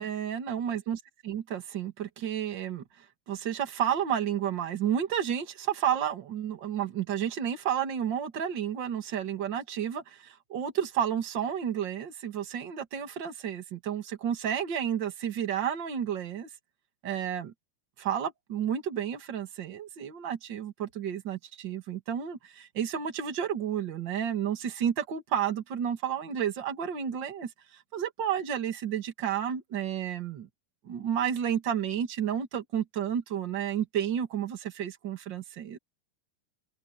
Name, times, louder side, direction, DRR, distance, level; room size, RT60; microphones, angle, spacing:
voice 1, 0.0-2.8 3.3-16.5 17.0-17.5 18.0-30.5 30.8-35.8, right 9 dB, 40° right, 1.6 m, -31 dB
omnidirectional pair, 4.7 m